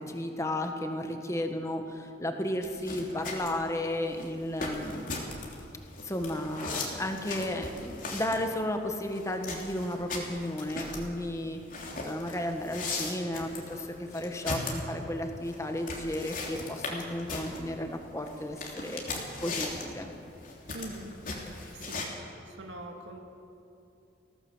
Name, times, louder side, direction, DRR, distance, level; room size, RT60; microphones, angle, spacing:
voice 1, 0.0-5.1 6.0-11.6 12.0-19.0 19.4-20.1, left 1 dB, 15° left, 5 dB, 1.6 m, -33 dB
sound 1, 2.6-22.1, left 3 dB, 45° left, 3.2 m, -38 dB
voice 2, 20.7-21.1 21.7-22.1 22.5-23.2, right 1 dB, 75° right, 2 dB, 2.1 m, -42 dB
19.5 x 17.0 x 8.0 m, 2.7 s
head